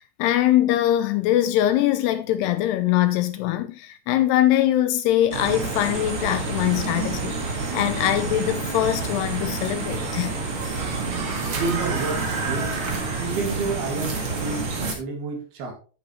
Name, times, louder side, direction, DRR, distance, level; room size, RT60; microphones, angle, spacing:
voice 1, 0.0-10.4, left 13 dB, 80° left, 2.6 m, -22 dB
sound 1, 5.3-14.9, right 3 dB, 40° right, 1.9 m, -28 dB
voice 2, 11.0-12.8 13.2-15.7, right 4 dB, 65° right, 4.0 m, -30 dB
10.5 x 8.4 x 3.1 m
omnidirectional pair, 5.1 m